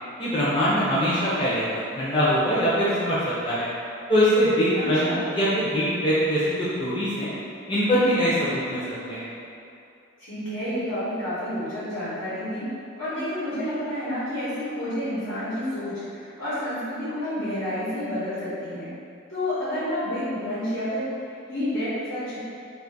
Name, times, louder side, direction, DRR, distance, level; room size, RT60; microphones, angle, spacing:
voice 1, 0.2-3.7 4.1-7.3 7.7-8.8 9.1-9.3, equal, 25° left, -10 dB, 0.4 m, -23 dB
voice 2, 4.7-5.2 10.2-12.7 13.0-18.9 19.3-21.1 21.5-22.4, left 1 dB, 85° left, -12 dB, 1.1 m, -29 dB
2.5 x 2.4 x 3.9 m, 2.5 s
head